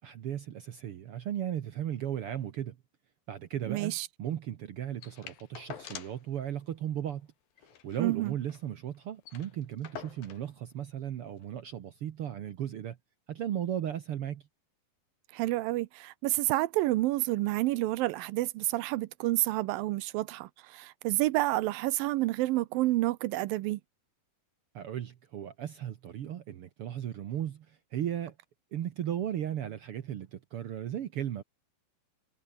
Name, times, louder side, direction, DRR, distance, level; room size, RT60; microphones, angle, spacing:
voice 1, 0.0-2.8 3.3-7.3 7.8-13.0 13.3-14.4 24.7-28.3 28.7-31.4, right 10 dB, 70° right, 1.3 m, -36 dB
voice 2, 3.7-4.1 8.0-8.3 15.3-23.8, right 18 dB, 85° right, 2.5 m, -29 dB
sound 1, 5.0-6.3 6.6-6.7 7.0-7.2 7.6-8.7 9.0-9.1 9.2-10.5 11.4-11.5, left 9 dB, 85° left, 4.0 m, -46 dB
omnidirectional pair, 4.1 m